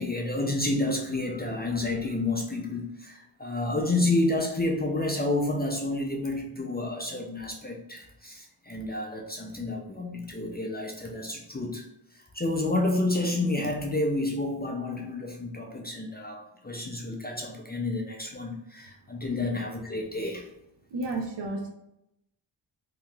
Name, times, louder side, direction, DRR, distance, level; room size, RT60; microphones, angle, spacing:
voice 1, 0.0-11.9 12.1-20.5, left 2 dB, 20° left, 1 dB, 0.4 m, -30 dB
voice 2, 20.9-21.7, right 2 dB, 65° right, 3 dB, 0.6 m, -31 dB
3.6 x 2.8 x 2.3 m, 0.84 s
wide cardioid pair, 75°, 46 cm